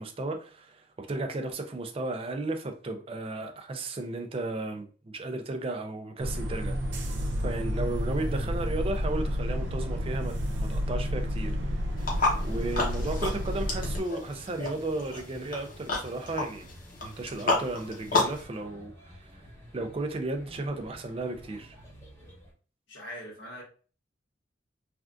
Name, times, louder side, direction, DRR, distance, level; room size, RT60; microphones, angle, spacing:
voice 1, 0.0-11.5 12.0-16.7 17.0-19.4 19.7-21.8, right 2 dB, 30° right, 0.4 m, -34 dB
sound 1, 6.2-14.0, equal, 75° right, 0.6 m, -30 dB
sound 2, 12.0-18.4, left 3 dB, 45° left, 0.8 m, -31 dB
sound 3, 12.8-22.5, equal, 15° left, 0.9 m, -51 dB
voice 2, 22.9-23.6, equal, 80° left, 1.5 m, -41 dB
3.4 x 2.4 x 2.4 m
head